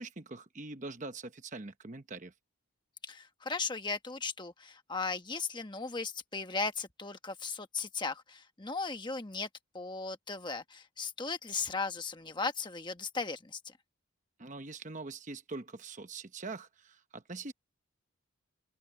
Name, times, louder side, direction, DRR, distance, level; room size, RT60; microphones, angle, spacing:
voice 1, 0.0-2.3 14.4-17.5, right 3 dB, 35° right, 1.0 m, -43 dB
voice 2, 3.0-9.5 9.7-13.7, left 4 dB, 20° left, 1.3 m, -37 dB
open air
head